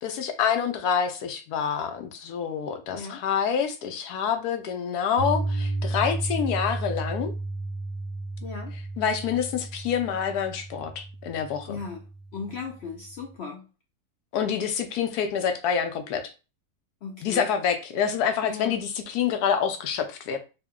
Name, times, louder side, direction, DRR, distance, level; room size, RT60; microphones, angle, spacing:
voice 1, 0.0-7.3 9.0-11.8 14.3-16.3 17.2-20.4, left 7 dB, 90° left, 1.2 m, -27 dB
voice 2, 2.9-3.2 8.4-8.7 11.7-12.1 12.3-13.7 17.0-17.4 18.4-18.8, left 5 dB, 70° left, 0.6 m, -37 dB
Piano, 5.2-13.3, right 2 dB, 60° right, 0.6 m, -33 dB
3.7 x 2.1 x 3.5 m
omnidirectional pair, 1.6 m